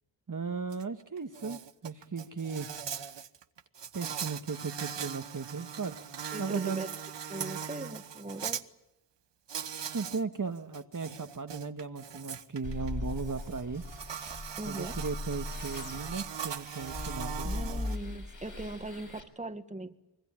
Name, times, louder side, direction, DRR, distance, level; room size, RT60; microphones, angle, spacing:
voice 1, 0.3-2.7 3.9-5.9 6.4-6.9 9.9-13.8 14.7-17.9, right 5 dB, 45° right, 7 dB, 1.6 m, -36 dB
Insect, 0.7-0.8 1.2-8.6 9.5-10.2 10.6-18.0, right 8 dB, 75° right, 1.2 m, -40 dB
voice 2, 6.3-6.9 7.3-8.7 14.6-15.0 17.4-20.0, right 2 dB, 15° right, 9 dB, 1.8 m, -40 dB
sound 1, 12.6-19.2, left 2 dB, 45° left, 6.0 m, -39 dB
26.0 x 21.5 x 8.9 m, 0.94 s
cardioid pair, 55°, 43 cm